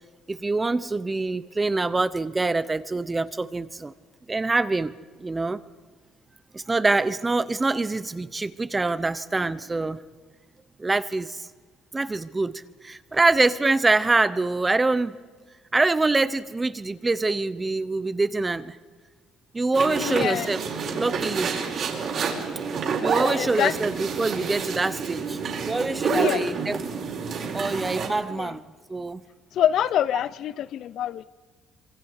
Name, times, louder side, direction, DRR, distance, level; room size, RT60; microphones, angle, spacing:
voice 1, 0.3-3.9 4.3-4.9 5.2-5.6 6.5-10.0 10.8-11.5 11.9-15.2 15.7-18.8 19.5-20.6 20.9-21.5 23.0-26.9 27.5-28.6 28.9-29.2, right 3 dB, 20° right, 1.0 m, -25 dB
sound 1, 19.7-28.1, right 5 dB, 60° right, 4.9 m, -28 dB
voice 2, 20.0-20.5 23.4-23.7 26.1-26.4 28.3-28.5 29.5-31.2, left 11 dB, 65° left, 0.6 m, -25 dB
26.5 x 23.5 x 5.0 m
cardioid pair, 100°, 0 cm